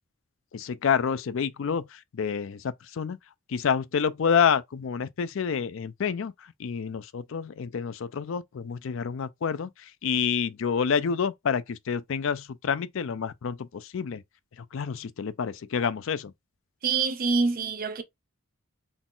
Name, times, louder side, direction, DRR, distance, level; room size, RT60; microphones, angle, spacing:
voice 1, 0.5-1.9 2.1-2.6 3.0-3.2 3.5-6.3 6.6-9.7 10.0-14.2 14.7-16.3, left 6 dB, 60° left, 0.4 m, -28 dB
voice 2, 16.8-18.0, right 4 dB, 40° right, 0.6 m, -25 dB
4.0 x 2.4 x 3.7 m
head